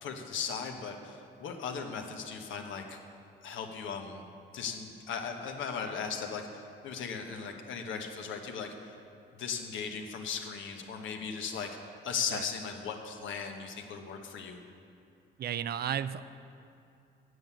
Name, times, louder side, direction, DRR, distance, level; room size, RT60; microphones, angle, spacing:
voice 1, 0.0-3.0 3.4-4.2 4.5-9.0 9.4-11.7 12.0-14.6, left 6 dB, 80° left, 3 dB, 1.2 m, -37 dB
voice 2, 15.4-16.2, right 9 dB, 55° right, 14 dB, 0.4 m, -33 dB
7.9 x 7.4 x 8.3 m, 2.7 s
cardioid pair, 90°, 20 cm